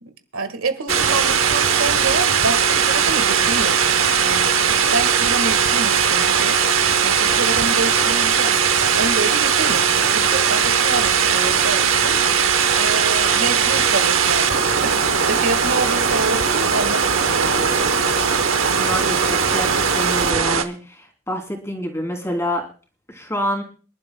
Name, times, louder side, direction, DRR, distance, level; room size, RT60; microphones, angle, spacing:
voice 1, 0.0-4.6 4.9-6.6 7.0-12.2 12.8-18.0, right 3 dB, 85° right, 10 dB, 1.6 m, -28 dB
sound 1, 0.9-20.3, left 2 dB, 45° left, 0.8 m, -31 dB
sound 2, 0.9-20.6, right 7 dB, 70° right, 1.0 m, -19 dB
voice 2, 18.8-22.6 23.1-23.6, equal, 15° left, 2 dB, 3.1 m, -27 dB
27.5 x 11.5 x 2.2 m, 0.37 s
head